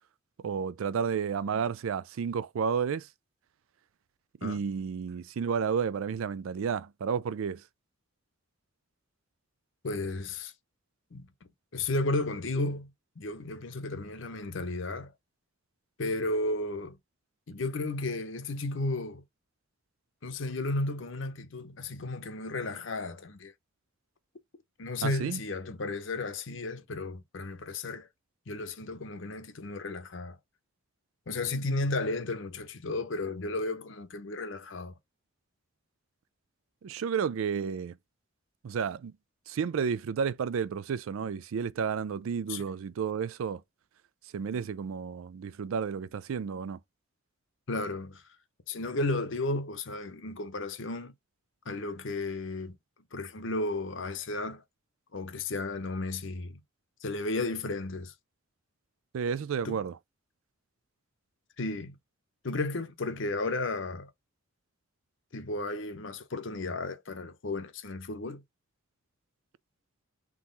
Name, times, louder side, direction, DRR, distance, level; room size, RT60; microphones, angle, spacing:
voice 1, 0.4-3.1 4.4-7.6 25.0-25.4 36.8-38.0 38.6-39.1 39.5-43.6 44.3-46.8 59.1-60.0, right 6 dB, 80° right, 0.4 m, -31 dB
voice 2, 9.8-10.5 11.1-11.3 11.7-12.9 13.2-15.1 16.0-17.0 17.5-19.2 20.2-23.5 24.8-28.1 28.5-30.4 31.3-35.0 42.5-42.6 47.7-48.2 48.7-51.1 51.7-52.7 53.1-54.6 55.1-56.6 57.0-58.1 59.6-59.8 61.6-61.9 62.4-64.1 65.3-68.4, left 2 dB, 65° left, 0.8 m, -33 dB
3.8 x 2.9 x 3.9 m
head